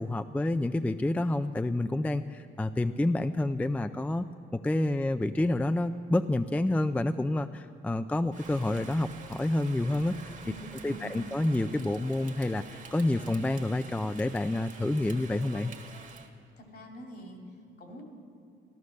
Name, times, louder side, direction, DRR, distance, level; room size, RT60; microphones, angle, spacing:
voice 1, 0.0-4.3 4.5-10.3 10.8-15.7, left 1 dB, 5° left, 11 dB, 0.4 m, -28 dB
Rain, 8.3-16.3, right 5 dB, 40° right, 1.5 m, -48 dB
voice 2, 10.4-11.6 16.6-18.0, equal, 55° left, 2 dB, 2.6 m, -46 dB
14.0 x 13.0 x 6.5 m, 2.5 s
cardioid pair, 90°, 20 cm